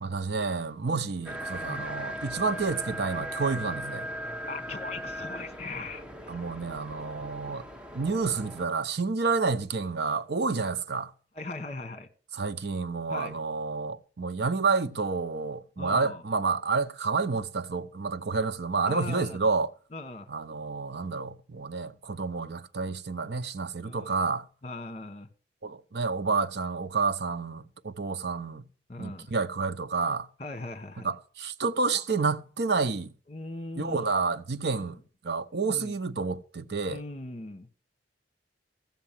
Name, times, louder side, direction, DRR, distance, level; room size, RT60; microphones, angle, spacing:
voice 1, 0.0-4.1 6.3-7.6 7.9-11.1 12.3-19.7 20.3-24.5 25.6-28.7 29.0-30.3 31.0-33.1 33.8-35.0 35.2-37.0, right 4 dB, 70° right, 0.8 m, -29 dB
sound 1, 1.2-8.6, equal, 5° right, 1.0 m, -38 dB
voice 2, 4.5-6.3 11.3-12.1 13.1-13.4 15.8-16.2 18.9-19.4 19.9-20.3 23.8-24.2 24.6-25.3 28.9-29.3 30.4-31.1 33.3-34.1 34.8-34.9 35.5-35.9 36.9-37.7, left 2 dB, 35° left, 1.4 m, -39 dB
15.0 x 7.3 x 7.4 m
head